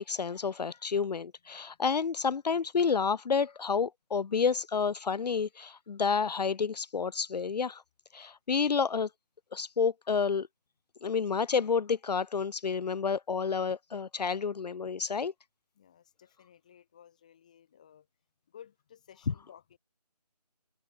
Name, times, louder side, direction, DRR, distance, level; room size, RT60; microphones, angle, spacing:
voice 1, 0.0-7.8 8.1-9.1 9.5-10.5 11.0-15.3 19.3-19.4, left 5 dB, 75° left, 0.4 m, -30 dB
voice 2, 15.7-18.1 18.5-19.8, left 9 dB, 10° left, 1.0 m, -56 dB
figure-of-eight pair, 165°, 21 cm